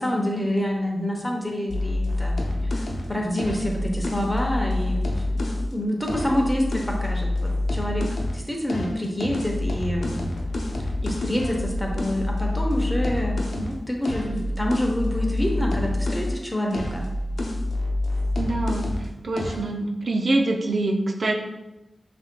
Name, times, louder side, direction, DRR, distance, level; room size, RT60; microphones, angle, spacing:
voice 1, 0.0-2.7 3.1-5.2 5.7-8.1 8.3-10.2 11.0-17.0, left 1 dB, 15° left, 1 dB, 0.8 m, -27 dB
sound 1, 1.7-5.7 6.0-8.4 8.7-16.4 16.7-19.1 19.4-19.7, left 1 dB, 80° left, 0.6 m, -27 dB
voice 2, 18.4-18.9 19.2-21.3, right 2 dB, 65° right, 2 dB, 0.4 m, -24 dB
5.6 x 2.6 x 2.2 m, 0.98 s
cardioid pair, 60°, 0 cm